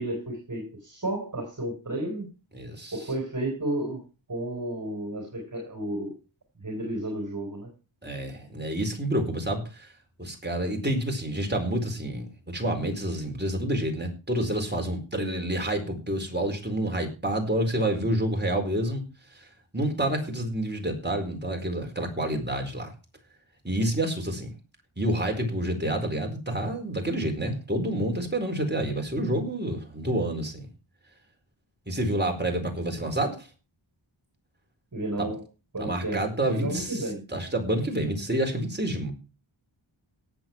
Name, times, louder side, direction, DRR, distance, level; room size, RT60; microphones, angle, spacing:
voice 1, 0.0-2.3 2.9-4.0 4.3-6.2 6.6-7.7 34.9-35.4 35.7-37.2, right 1 dB, 40° right, 2 dB, 4.7 m, -32 dB
voice 2, 2.5-2.9 8.0-9.9 10.2-19.0 19.3-19.5 19.7-22.9 23.6-24.5 25.0-30.7 31.9-33.5 35.2-35.3 35.8-39.1, right 1 dB, 20° right, 2 dB, 4.5 m, -28 dB
17.5 x 7.7 x 4.6 m, 0.31 s
wide cardioid pair, 80°, 47 cm